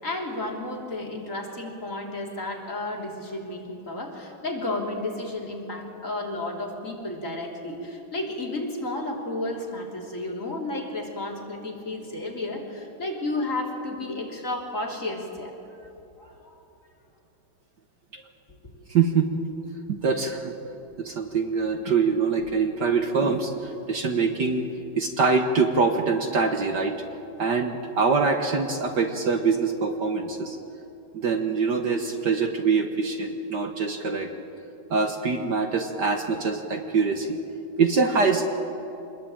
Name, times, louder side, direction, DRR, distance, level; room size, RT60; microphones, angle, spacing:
voice 1, 0.0-15.5 16.2-16.5, left 2 dB, 35° left, -1 dB, 3.7 m, -32 dB
voice 2, 18.9-19.3 19.9-20.5 21.0-24.7 25.0-27.0 27.4-30.6 31.1-34.3 34.9-37.4 37.8-38.6, right 4 dB, 55° right, 5 dB, 1.7 m, -24 dB
25.5 x 21.0 x 8.9 m, 2.9 s
omnidirectional pair, 2.4 m